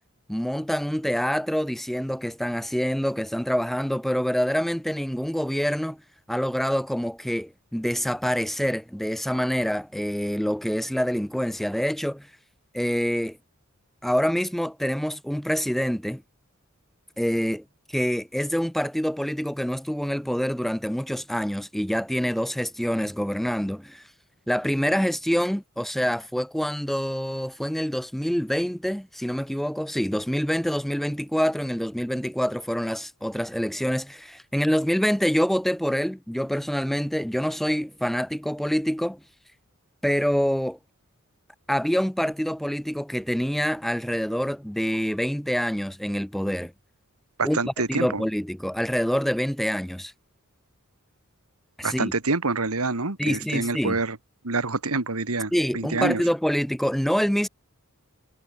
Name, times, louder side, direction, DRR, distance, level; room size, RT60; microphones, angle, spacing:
voice 1, 0.3-6.0 6.3-12.3 12.7-13.4 14.0-16.2 17.2-24.0 24.5-39.2 40.0-40.8 41.7-46.7 47.4-50.1 51.8-52.1 53.2-54.0 55.5-57.5, equal, ahead, 0.4 m, -26 dB
voice 2, 47.4-48.2 51.8-54.2 54.4-56.2, right 3 dB, 85° right, 2.1 m, -27 dB
head